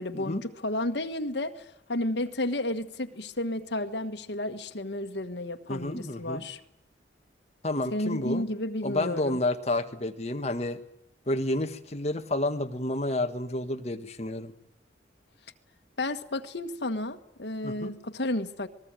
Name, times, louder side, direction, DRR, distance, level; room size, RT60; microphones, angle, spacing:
voice 1, 0.0-6.6 7.9-9.4 16.0-18.7, left 1 dB, 70° left, 7 dB, 1.6 m, -32 dB
voice 2, 5.7-6.4 7.6-8.4 8.8-10.8 11.3-14.5 17.6-17.9, left 1 dB, 35° left, 6 dB, 1.6 m, -30 dB
27.5 x 20.0 x 9.1 m, 0.77 s
head